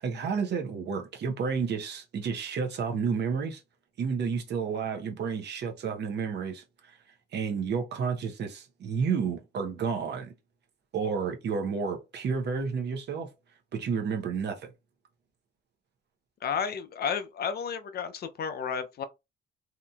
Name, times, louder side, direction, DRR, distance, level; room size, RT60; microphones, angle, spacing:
voice 1, 0.0-3.6 4.0-6.6 7.3-10.3 10.9-13.3 13.7-14.7, right 6 dB, 60° right, 0.8 m, -31 dB
voice 2, 16.4-19.0, left 7 dB, 55° left, 0.5 m, -32 dB
2.8 x 2.5 x 2.3 m
cardioid pair, 90°, 20 cm